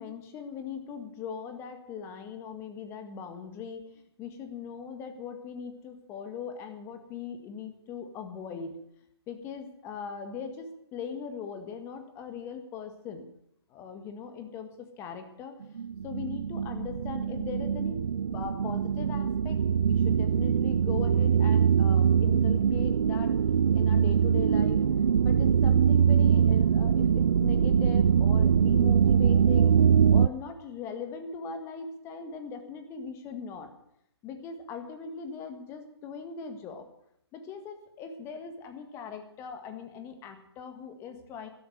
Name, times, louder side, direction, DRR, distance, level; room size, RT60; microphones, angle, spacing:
voice 1, 0.0-3.8 4.2-8.7 9.3-13.3 13.7-15.6 16.0-18.0 18.3-23.3 23.7-24.8 25.2-29.7 30.1-33.7 34.2-36.9 37.3-41.5, left 6 dB, 20° left, 6 dB, 1.7 m, -40 dB
sound 1, 15.6-30.3, right 7 dB, 65° right, 0.5 m, -23 dB
14.5 x 12.0 x 6.7 m, 0.74 s
figure-of-eight pair, 140°, 14 cm